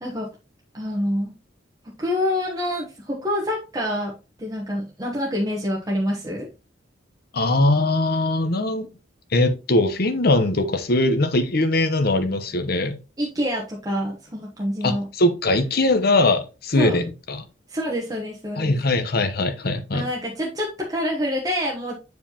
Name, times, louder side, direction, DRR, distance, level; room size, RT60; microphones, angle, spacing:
voice 1, 0.0-0.3 0.7-1.3 2.0-6.5 13.2-15.1 16.8-17.0 17.7-18.7 19.9-21.9, equal, 20° right, 1.0 m, -26 dB
voice 2, 7.3-8.9 9.3-13.0 14.8-17.5 18.6-20.0, left 2 dB, 50° left, 0.9 m, -21 dB
7.3 x 4.7 x 2.9 m
head